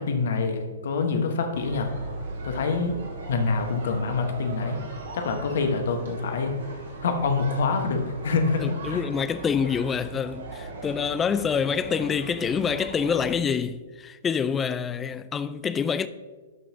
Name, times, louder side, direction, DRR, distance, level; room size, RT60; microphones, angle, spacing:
voice 1, 0.0-1.9 2.4-3.0 3.3-4.8 5.1-6.6 7.0-9.0, left 4 dB, 60° left, 1.2 m, -26 dB
sound 1, 1.5-13.3, right 3 dB, 65° right, 2.5 m, -39 dB
voice 2, 8.6-16.1, left 6 dB, 15° left, 0.3 m, -26 dB
12.0 x 5.8 x 2.8 m
figure-of-eight pair, 115°, 0 cm